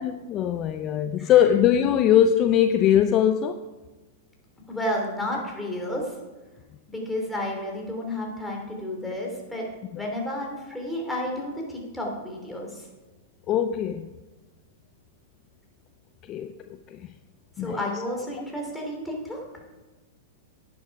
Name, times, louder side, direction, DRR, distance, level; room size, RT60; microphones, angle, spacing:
voice 1, 0.0-3.6 9.9-10.0 13.5-14.1 16.3-16.5 16.9-17.1 17.6-17.9, left 10 dB, 35° left, 0.5 m, -21 dB
voice 2, 4.7-6.0 6.9-9.6 9.9-12.8 17.6-19.4, left 1 dB, 5° left, 3.2 m, -31 dB
10.5 x 9.7 x 4.8 m
hypercardioid pair, 120°, 0 cm